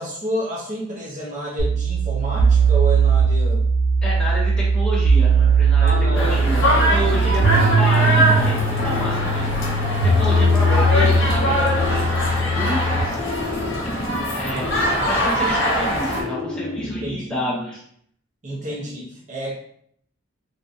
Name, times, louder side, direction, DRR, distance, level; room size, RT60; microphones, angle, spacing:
voice 1, 0.0-3.6 5.8-6.4 6.7-7.2 16.8-17.7 18.4-19.6, equal, 40° right, -6 dB, 0.6 m, -30 dB
sound 1, 1.6-13.0, right 3 dB, 90° right, 0.4 m, -19 dB
voice 2, 4.0-6.6 6.9-9.6 10.0-13.2 14.3-14.7 15.1-17.8 18.5-18.7, equal, 5° left, -7 dB, 0.9 m, -29 dB
sound 2, 5.9-6.9 7.3-9.8 10.2-12.7 13.1-15.6 16.0-17.5, left 3 dB, 30° left, 0.4 m, -32 dB
sound 3, 6.1-16.2, equal, 65° left, 0.7 m, -23 dB
2.6 x 2.1 x 2.5 m, 0.67 s
head